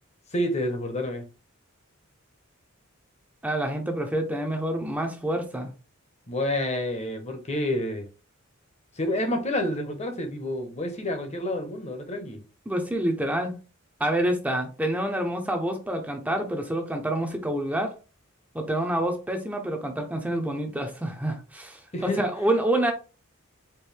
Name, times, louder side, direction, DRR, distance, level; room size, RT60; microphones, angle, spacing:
voice 1, 0.3-1.3 6.3-8.1 9.0-12.4 21.9-22.2, left 1 dB, 30° left, 0.9 m, -29 dB
voice 2, 3.4-5.7 12.7-13.6 14.0-17.9 18.5-22.9, right 1 dB, 5° right, 0.6 m, -27 dB
4.5 x 2.5 x 3.3 m
head